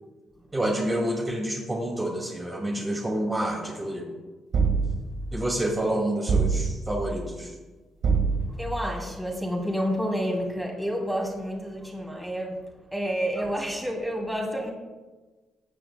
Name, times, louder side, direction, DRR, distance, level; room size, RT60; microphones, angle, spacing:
voice 1, 0.5-4.1 5.3-7.5, right 1 dB, 20° right, -2 dB, 2.2 m, -28 dB
sound 1, 4.5-5.3 6.3-7.0 8.0-8.8, right 5 dB, 60° right, 1.7 m, -24 dB
voice 2, 8.5-14.7, equal, 5° right, -1 dB, 2.8 m, -29 dB
17.0 x 10.0 x 2.3 m, 1.3 s
cardioid pair, 90°, 0 cm